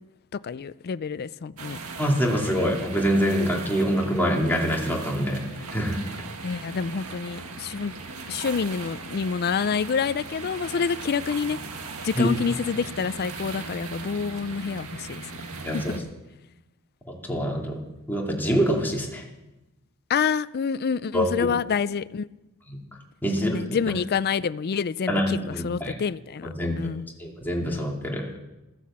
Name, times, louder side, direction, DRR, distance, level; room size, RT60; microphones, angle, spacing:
voice 1, 0.3-1.8 6.4-7.9 8.3-11.6 12.0-15.3 15.7-16.0 20.1-22.3 23.4-26.5 26.8-27.1, left 6 dB, 45° left, 0.4 m, -27 dB
sound 1, 1.6-16.0, right 4 dB, 70° right, 1.8 m, -38 dB
voice 2, 2.0-5.4 5.7-6.0 12.1-12.3 15.6-16.0 17.1-17.8 18.1-19.2 21.1-21.5 22.7-22.8 23.2-23.5 25.1-25.9 26.4-26.8 27.2-28.3, equal, 10° left, 2.6 m, -25 dB
14.5 x 9.9 x 7.4 m
head